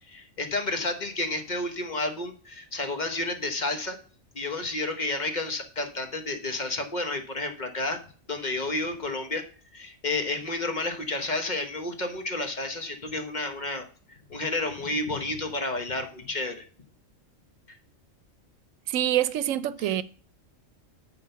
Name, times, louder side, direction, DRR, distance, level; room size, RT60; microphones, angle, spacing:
voice 1, 0.1-4.0 4.3-8.0 8.3-9.4 9.7-16.6, left 2 dB, 40° left, 1.1 m, -31 dB
voice 2, 18.9-20.0, right 12 dB, 85° right, 1.0 m, -25 dB
9.2 x 3.9 x 6.8 m
omnidirectional pair, 1.3 m